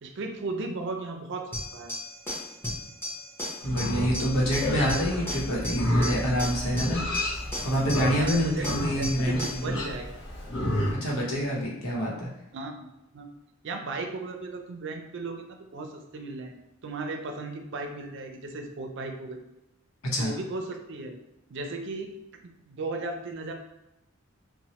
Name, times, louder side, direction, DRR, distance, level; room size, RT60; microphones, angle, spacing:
voice 1, 0.0-1.9 8.0-8.7 8.9-10.2 12.5-13.3 13.6-16.6 16.8-19.4 20.2-21.2 21.5-22.2 22.4-23.5, right 3 dB, 60° right, 4 dB, 0.4 m, -36 dB
sound 1, 1.5-9.7, left 1 dB, 10° left, 0.8 m, -35 dB
voice 2, 3.6-7.0 7.6-9.7 11.0-12.3 20.1-20.3, equal, 90° left, -4 dB, 0.9 m, -27 dB
Livestock farm animals working animals, 3.6-10.9, left 1 dB, 60° left, 0.8 m, -31 dB
3.0 x 2.1 x 2.8 m, 0.92 s
head